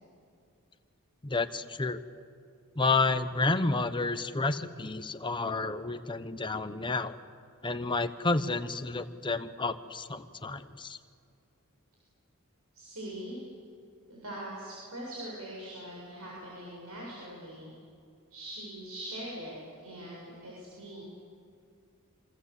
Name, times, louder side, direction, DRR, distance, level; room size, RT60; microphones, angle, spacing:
voice 1, 1.2-2.0 2.8-7.2 7.6-11.0, left 3 dB, 20° left, 9 dB, 0.9 m, -30 dB
voice 2, 12.7-13.4 14.1-17.7 18.3-19.5 19.8-21.0, right 1 dB, 80° right, -5 dB, 7.5 m, -42 dB
27.0 x 26.0 x 8.3 m, 2.3 s
head